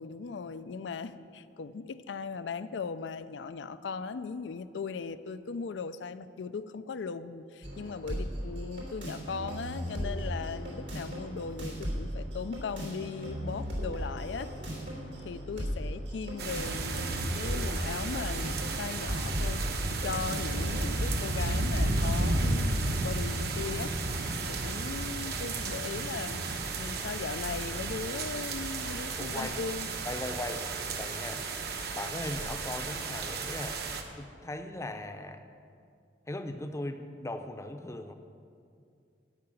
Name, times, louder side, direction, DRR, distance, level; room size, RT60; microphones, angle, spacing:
voice 1, 0.0-14.5 15.2-19.6 19.9-24.0 24.5-26.4 26.8-29.9, left 5 dB, 85° left, 12 dB, 0.4 m, -38 dB
sound 1, 7.6-21.6, equal, 85° right, 3.2 m, -37 dB
sound 2, 16.4-34.0, right 2 dB, 60° right, 1.0 m, -33 dB
voice 2, 29.2-29.6 30.1-31.5 31.9-33.8 34.1-35.4 36.3-38.1, left 1 dB, 15° left, 7 dB, 0.6 m, -38 dB
12.5 x 5.7 x 8.9 m, 2.4 s
head